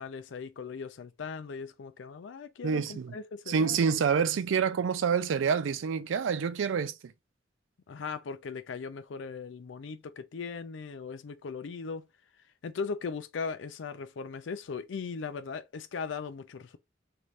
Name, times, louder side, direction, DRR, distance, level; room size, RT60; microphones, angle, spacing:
voice 1, 0.0-3.8 7.9-12.1 12.6-16.8, left 5 dB, 75° left, 0.4 m, -38 dB
voice 2, 2.6-3.2 3.5-7.1, right 6 dB, 80° right, 0.4 m, -27 dB
3.2 x 2.8 x 2.4 m
head